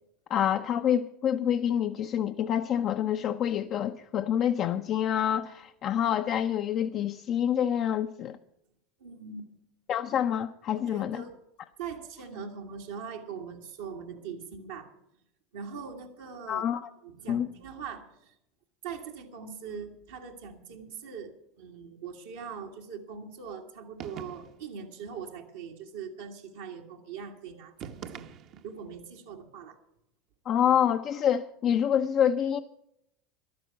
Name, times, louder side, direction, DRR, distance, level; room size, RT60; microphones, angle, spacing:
voice 1, 0.3-8.4 9.9-11.2 16.5-16.9 17.3-17.5 30.5-32.6, left 9 dB, 45° left, 0.7 m, -27 dB
voice 2, 9.0-9.5 10.7-11.3 11.8-14.9 15.5-16.6 17.0-18.3 18.8-28.3 28.6-29.8, right 6 dB, 80° right, 1.8 m, -41 dB
sound 1, 24.0-24.7 27.8-28.8, right 8 dB, 50° right, 1.0 m, -43 dB
13.5 x 12.0 x 5.8 m
hypercardioid pair, 80°, 0 cm